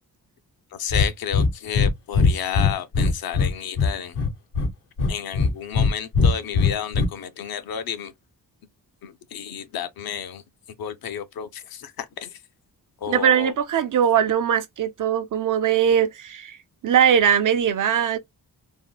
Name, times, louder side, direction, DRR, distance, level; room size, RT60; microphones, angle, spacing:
voice 1, 0.8-4.2 5.1-8.1 9.0-10.4 10.8-12.4 13.0-13.5, left 8 dB, 65° left, 0.6 m, -31 dB
Breathing, 0.9-1.1 1.3-1.9 2.1-3.5 3.8-4.7 5.0-5.9 6.1-7.1, left 4 dB, 85° left, 1.0 m, -19 dB
voice 2, 13.1-16.6 16.8-18.2, right 8 dB, 55° right, 0.5 m, -20 dB
3.5 x 2.1 x 2.2 m
wide cardioid pair, 150°, 38 cm